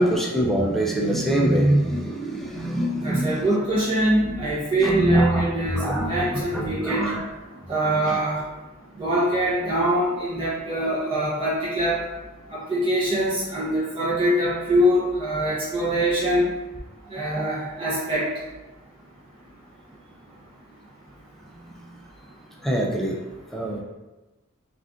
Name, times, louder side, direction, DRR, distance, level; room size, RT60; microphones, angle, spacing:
voice 1, 0.0-3.5 4.2-4.4 4.8-5.4 5.7-7.3 7.6-7.7 8.1-8.2 22.6-23.2 23.5-23.8, right 1 dB, ahead, -2 dB, 0.3 m, -23 dB
voice 2, 3.0-7.1 7.7-8.4 9.0-12.0 12.5-16.5 17.1-18.3, right 1 dB, 25° right, -9 dB, 0.7 m, -23 dB
2.4 x 2.4 x 3.4 m, 1.1 s
head